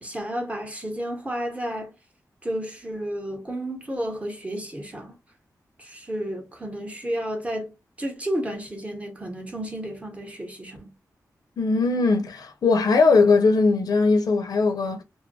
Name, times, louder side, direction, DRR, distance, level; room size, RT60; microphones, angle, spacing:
voice 1, 0.0-1.9 2.4-5.1 5.8-10.9, equal, 20° right, 0.8 m, -32 dB
voice 2, 11.6-15.0, left 4 dB, 75° left, 0.5 m, -20 dB
2.5 x 2.2 x 2.6 m
wide cardioid pair, 100°, 7 cm